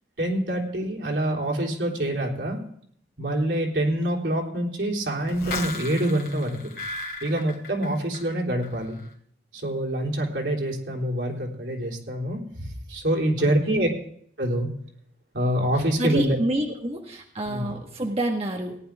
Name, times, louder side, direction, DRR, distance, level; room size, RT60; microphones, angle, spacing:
voice 1, 0.2-2.6 3.2-6.6 7.2-9.0 9.5-13.9 14.4-14.7 15.3-16.4 17.5-17.7, right 1 dB, 90° right, -1 dB, 3.6 m, -26 dB
sound 1, 5.3-8.3 8.6-9.1, left 3 dB, 55° left, 2.7 m, -35 dB
voice 2, 13.4-14.0 16.0-18.8, right 1 dB, 35° right, 1 dB, 1.5 m, -28 dB
18.0 x 10.5 x 3.6 m, 0.65 s
head